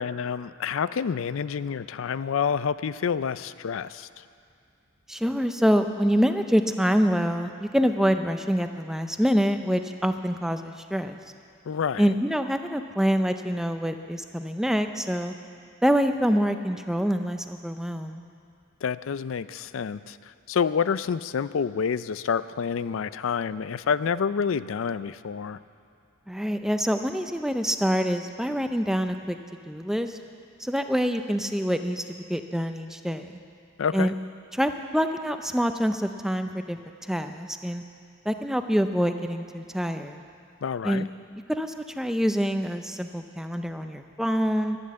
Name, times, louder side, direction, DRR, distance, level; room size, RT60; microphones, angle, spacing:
voice 1, 0.0-4.1 11.7-12.1 18.8-20.2 20.5-25.6 33.8-34.1 40.6-41.1, left 6 dB, 70° left, 15 dB, 0.4 m, -28 dB
voice 2, 5.1-11.2 12.0-15.3 15.8-18.2 26.3-29.4 29.7-30.2 30.6-33.3 33.9-34.1 34.5-36.8 37.1-37.8 38.3-40.2 40.8-41.0 41.5-44.8, equal, ahead, 7 dB, 0.5 m, -26 dB
12.5 x 11.5 x 7.6 m, 2.4 s
head